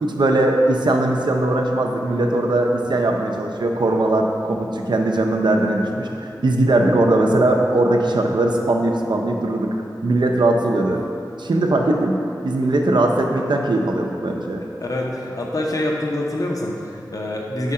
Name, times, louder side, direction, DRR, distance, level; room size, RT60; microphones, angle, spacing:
voice 1, 0.0-9.8 10.0-11.1 11.4-14.6, right 2 dB, 85° right, 2 dB, 0.5 m, -19 dB
voice 2, 14.8-17.7, left 1 dB, 50° left, -1 dB, 0.7 m, -25 dB
5.0 x 3.6 x 5.5 m, 2.5 s
wide cardioid pair, 60°, 8 cm